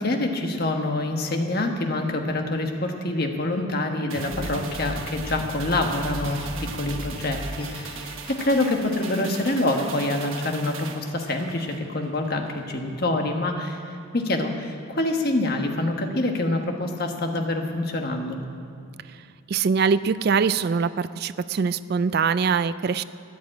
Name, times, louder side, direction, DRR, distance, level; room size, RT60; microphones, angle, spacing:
voice 1, 0.0-13.8 14.1-18.4, left 2 dB, 45° left, 3 dB, 1.4 m, -26 dB
sound 1, 4.1-12.7 13.0-13.1, right 3 dB, 75° right, 1.2 m, -37 dB
sound 2, 6.2-10.6 11.0-11.1, left 1 dB, 30° left, 3.1 m, -48 dB
voice 2, 19.5-23.0, right 5 dB, 50° right, 15 dB, 0.3 m, -23 dB
13.0 x 10.5 x 8.9 m, 2.4 s
head